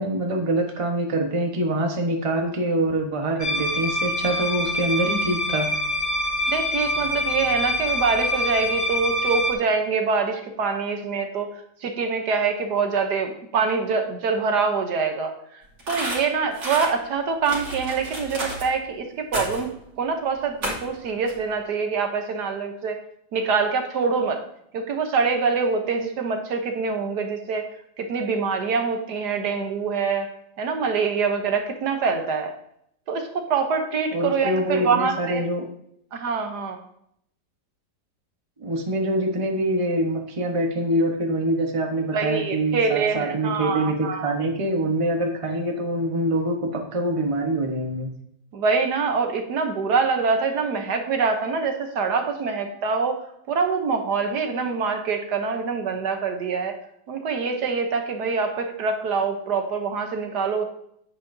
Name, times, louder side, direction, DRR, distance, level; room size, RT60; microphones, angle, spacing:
voice 1, 0.0-5.7 34.1-35.6 38.6-48.1, right 1 dB, 20° right, 2 dB, 0.9 m, -25 dB
sound 1, 3.4-9.5, left 1 dB, 45° left, 1.1 m, -25 dB
voice 2, 6.5-11.5 11.8-15.3 15.9-19.7 20.0-23.0 23.3-24.4 24.7-27.7 28.0-30.3 30.6-32.5 33.1-35.4 36.1-36.8 42.1-44.3 48.5-53.2 53.5-56.8 57.1-60.6, right 5 dB, 70° right, 5 dB, 1.4 m, -25 dB
sound 2, 15.8-16.9 17.4-18.7 19.3-19.7 20.6-20.9 21.3-21.4, right 1 dB, 85° right, 3.2 m, -31 dB
9.6 x 8.1 x 2.7 m, 0.71 s
omnidirectional pair, 1.9 m